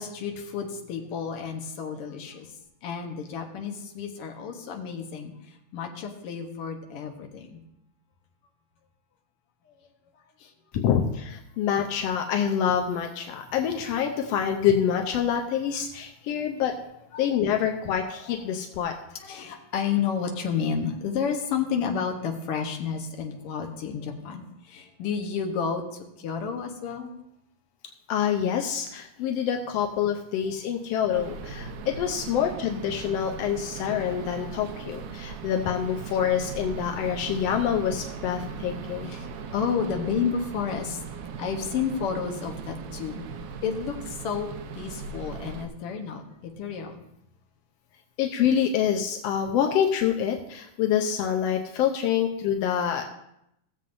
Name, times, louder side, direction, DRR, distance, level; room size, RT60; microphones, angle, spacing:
voice 1, 0.0-2.5 2.8-5.3 5.7-7.6 10.4-10.5 17.1-17.3 18.2-18.4 19.1-25.8 26.2-27.1 39.0-39.3 39.5-41.0 41.4-43.2 43.6-44.5 44.7-46.2 46.6-47.0, left 6 dB, 60° left, 3 dB, 1.6 m, -31 dB
voice 2, 10.7-16.7 17.2-18.9 28.1-39.1 48.2-53.0, left 8 dB, 80° left, 3 dB, 1.4 m, -26 dB
sound 1, 31.1-45.7, right 5 dB, 80° right, 2.2 m, -38 dB
17.5 x 7.5 x 2.6 m, 0.80 s
omnidirectional pair, 3.6 m